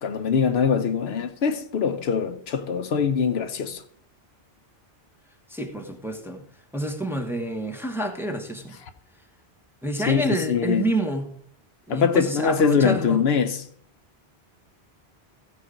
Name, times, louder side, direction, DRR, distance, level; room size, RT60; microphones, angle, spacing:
voice 1, 0.0-3.8 10.1-10.9 11.9-13.6, left 6 dB, 75° left, 1.0 m, -23 dB
voice 2, 5.5-6.4 6.7-8.8 9.8-11.3 11.9-13.2, right 1 dB, ahead, 1.0 m, -28 dB
15.5 x 5.3 x 5.0 m
omnidirectional pair, 1.1 m